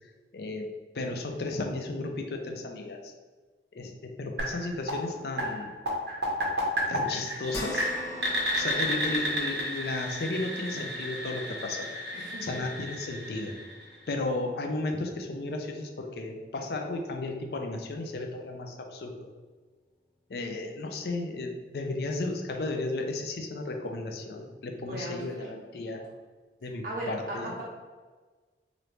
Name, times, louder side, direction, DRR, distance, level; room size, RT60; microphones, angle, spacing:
voice 1, 0.3-0.7 0.9-3.1 3.7-5.7 6.9-7.9 8.6-11.9 12.4-13.5 14.1-19.3 20.3-26.0 26.6-27.5, left 2 dB, 65° left, 3 dB, 0.4 m, -34 dB
sound 1, 4.4-14.2, equal, 75° right, 0.8 m, -32 dB
sound 2, 7.5-16.1 16.6-16.7 18.1-18.2, equal, 15° left, 0.5 m, -45 dB
voice 2, 12.1-12.5 24.9-25.2 26.8-27.6, right 1 dB, 50° right, -6 dB, 1.2 m, -36 dB
3.0 x 2.6 x 3.2 m, 1.4 s
head